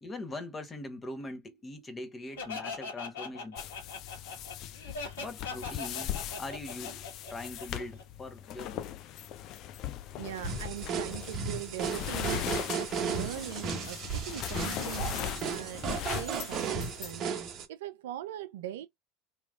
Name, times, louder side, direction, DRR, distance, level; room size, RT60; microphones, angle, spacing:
voice 1, 0.0-3.6 5.2-7.0 7.3-8.9, left 2 dB, 20° left, 1.2 m, -42 dB
Laughter, 2.4-8.0, left 4 dB, 70° left, 1.9 m, -40 dB
sound 1, 3.6-17.2, left 12 dB, 45° left, 0.4 m, -39 dB
voice 2, 10.2-17.3 17.7-18.9, right 12 dB, 65° right, 0.4 m, -41 dB
sound 2, 10.4-17.6, right 6 dB, 40° right, 1.0 m, -35 dB
3.5 x 2.9 x 2.5 m
figure-of-eight pair, 75°, 0 cm